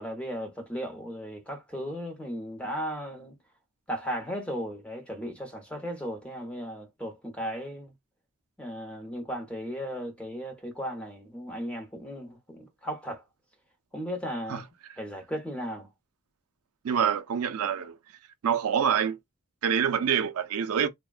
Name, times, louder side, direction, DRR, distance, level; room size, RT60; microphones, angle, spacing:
voice 1, 0.0-3.4 3.9-7.9 8.6-13.2 13.9-14.7 15.0-15.9, equal, 5° left, 0.7 m, -36 dB
voice 2, 16.8-18.0 18.4-19.2 19.6-20.9, right 8 dB, 70° right, 0.4 m, -26 dB
3.4 x 2.1 x 2.3 m
head